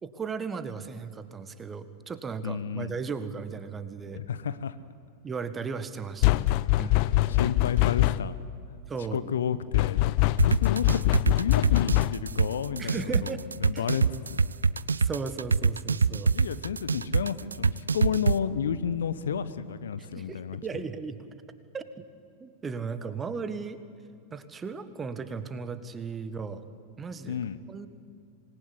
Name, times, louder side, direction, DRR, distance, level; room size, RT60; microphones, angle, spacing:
voice 1, 0.0-4.2 5.2-6.5 6.8-6.9 7.3-7.6 8.9-9.3 12.8-13.4 13.7-14.0 15.0-16.3 20.1-21.2 21.7-22.1 22.4-23.8 24.3-26.6 27.0-27.4 27.7-27.9, right 5 dB, 20° right, 12 dB, 1.6 m, -36 dB
voice 2, 2.4-2.9 4.1-4.8 6.7-8.4 9.1-14.5 16.3-20.8 27.3-27.6, left 7 dB, 65° left, 14 dB, 1.1 m, -32 dB
sound 1, 6.2-8.5 9.7-12.4, left 17 dB, 45° left, 0.6 m, -24 dB
sound 2, 10.4-18.4, right 5 dB, 75° right, 0.5 m, -24 dB
26.0 x 20.0 x 9.9 m, 2.5 s
figure-of-eight pair, 90°, 0 cm